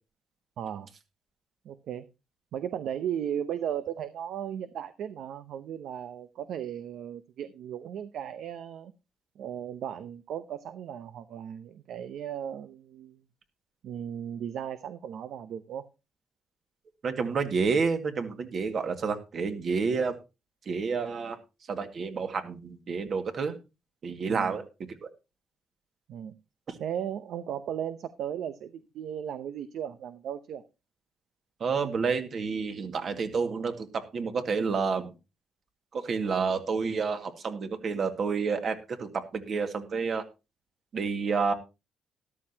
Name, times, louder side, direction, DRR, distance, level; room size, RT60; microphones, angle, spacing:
voice 1, 0.6-0.9 1.6-2.1 2.5-8.9 9.4-13.2 13.8-15.8 24.3-24.5 26.1-26.3 26.8-30.6, right 9 dB, 75° right, 11 dB, 0.8 m, -36 dB
voice 2, 17.0-20.1 20.7-21.4 21.7-23.6 24.0-25.1 26.7-26.8 31.6-35.1 35.9-40.2 40.9-41.5, right 5 dB, 50° right, 7 dB, 2.0 m, -29 dB
13.5 x 12.0 x 2.9 m, 0.28 s
cardioid pair, 90°, 0 cm